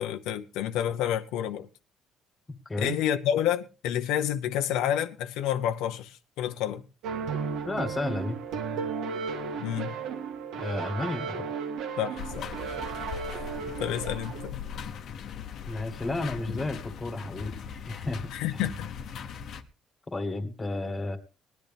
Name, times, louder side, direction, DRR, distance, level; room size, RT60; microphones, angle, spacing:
voice 1, 0.0-1.7 2.8-6.8 9.6-9.9 12.0-12.5 13.8-14.6 18.3-18.9, left 10 dB, 90° left, 0.9 m, -29 dB
voice 2, 2.6-3.0 7.6-8.4 10.5-11.4 15.7-18.2 18.5-18.6 20.1-21.2, left 2 dB, 15° left, 1.5 m, -32 dB
sound 1, 7.0-14.5, right 6 dB, 70° right, 1.7 m, -34 dB
sound 2, 12.2-19.6, left 7 dB, 50° left, 1.0 m, -39 dB
19.5 x 10.5 x 3.5 m
cardioid pair, 165°, 0 cm